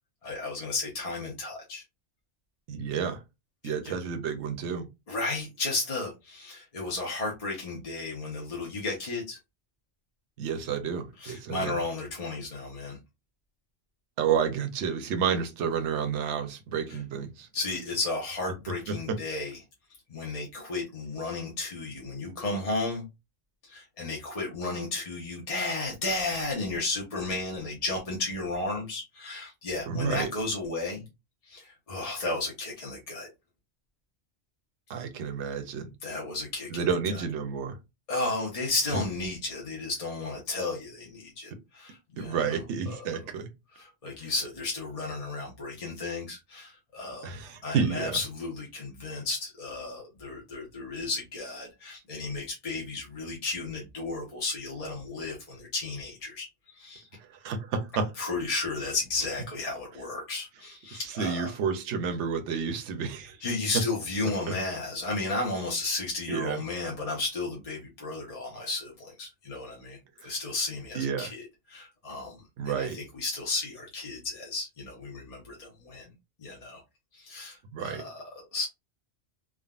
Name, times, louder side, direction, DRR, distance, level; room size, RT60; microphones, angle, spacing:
voice 1, 0.2-1.8 3.6-3.9 5.1-9.4 11.2-13.0 16.9-17.0 17.5-19.6 20.1-23.0 23.6-31.0 31.4-33.3 36.0-37.2 38.1-42.6 42.9-43.1 43.7-47.3 47.6-57.1 58.2-61.6 63.4-72.4 72.7-76.1 76.4-76.8 77.1-78.7, left 3 dB, 40° left, 0.7 m, -33 dB
voice 2, 2.7-3.2 3.6-4.9 10.4-11.8 14.2-17.5 18.9-19.2 29.9-30.3 34.9-35.9 36.7-37.8 42.2-43.5 44.2-44.3 47.2-48.2 57.4-58.1 60.9-63.4 66.3-66.6 70.2-70.3 70.9-71.3 72.6-73.0 77.7-78.1, right 6 dB, 75° right, 0.9 m, -30 dB
3.5 x 2.1 x 2.3 m
omnidirectional pair, 1.2 m